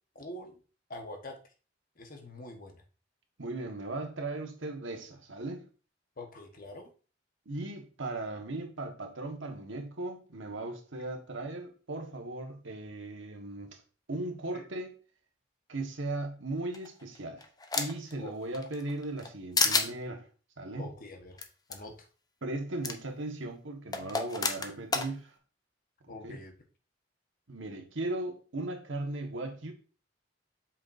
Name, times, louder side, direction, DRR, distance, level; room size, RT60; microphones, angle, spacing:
voice 1, 0.1-0.6 0.9-1.4 2.0-2.8 6.2-6.9 14.5-14.6 18.2-18.3 20.8-21.4 21.7-22.1 26.1-26.5, left 1 dB, 50° left, 1.2 m, -44 dB
voice 2, 3.4-5.7 7.4-13.8 14.1-14.9 15.7-17.5 17.7-20.2 20.6-20.9 22.4-25.3 26.2-26.4 27.5-29.7, right 2 dB, 85° right, 1.4 m, -37 dB
sound 1, 16.7-18.1 18.5-19.3 19.6-19.9 21.4-21.5 21.7-21.8 22.8-22.9 23.9-25.1, left 4 dB, 20° left, 0.7 m, -29 dB
7.8 x 5.8 x 2.6 m
head